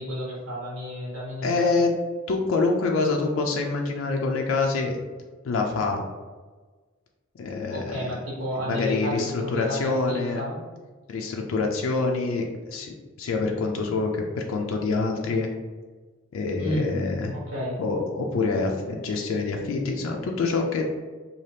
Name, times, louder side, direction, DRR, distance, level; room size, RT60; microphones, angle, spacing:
voice 1, 0.0-1.7 7.7-10.6 16.6-16.9 17.3-17.8, equal, 90° right, -5 dB, 1.2 m, -31 dB
voice 2, 1.4-1.9 2.3-5.0 5.4-6.0 7.4-8.1 8.6-10.4 11.1-15.5 16.3-17.3 17.8-20.8, left 3 dB, 75° left, 1 dB, 0.4 m, -26 dB
2.7 x 2.3 x 3.2 m, 1.4 s
head